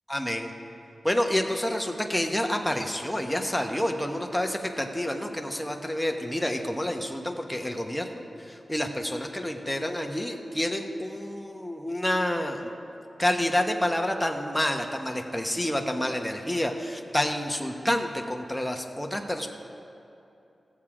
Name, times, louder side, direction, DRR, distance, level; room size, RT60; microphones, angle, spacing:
voice 1, 0.1-0.5 1.0-12.7 13.2-19.5, left 1 dB, 5° left, 3 dB, 1.0 m, -28 dB
14.5 x 7.4 x 4.9 m, 2.8 s
cardioid pair, 55°, 0 cm